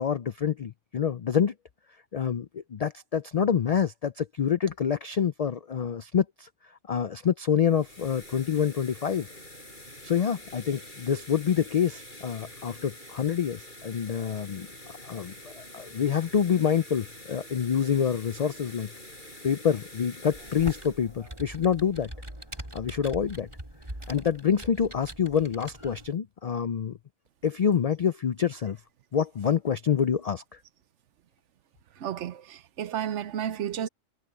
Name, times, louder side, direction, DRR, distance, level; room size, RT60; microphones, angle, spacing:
voice 1, 0.0-1.5 2.1-6.5 6.9-9.3 10.0-14.7 15.0-18.9 19.4-22.1 22.7-23.5 24.1-27.0 27.4-28.8 29.1-30.6, left 7 dB, 75° left, 0.3 m, -27 dB
sound 1, 7.4-22.4, left 1 dB, 40° left, 7.8 m, -47 dB
Computer keyboard, 20.3-26.1, right 1 dB, 25° right, 4.2 m, -42 dB
voice 2, 32.0-33.9, right 9 dB, 75° right, 1.0 m, -32 dB
omnidirectional pair, 1.2 m